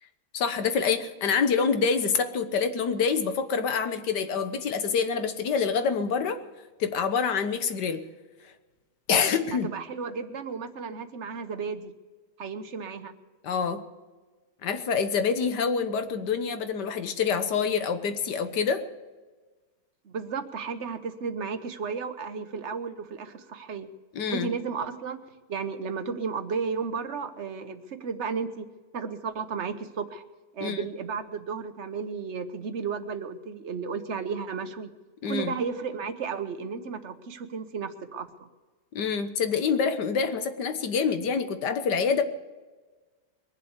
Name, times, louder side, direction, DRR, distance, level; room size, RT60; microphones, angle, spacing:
voice 1, 0.3-6.4 6.8-8.0 9.1-9.7 13.4-13.8 14.6-18.8 24.1-24.5 30.6-30.9 35.2-35.5 38.9-42.2, left 6 dB, 75° left, 9 dB, 1.7 m, -26 dB
voice 2, 9.6-11.9 12.4-13.1 20.0-23.9 24.3-25.2 25.5-28.6 28.9-30.2 30.5-34.9 35.3-38.5, right 5 dB, 45° right, 9 dB, 1.2 m, -33 dB
22.5 x 7.6 x 8.1 m, 1.3 s
omnidirectional pair, 1.9 m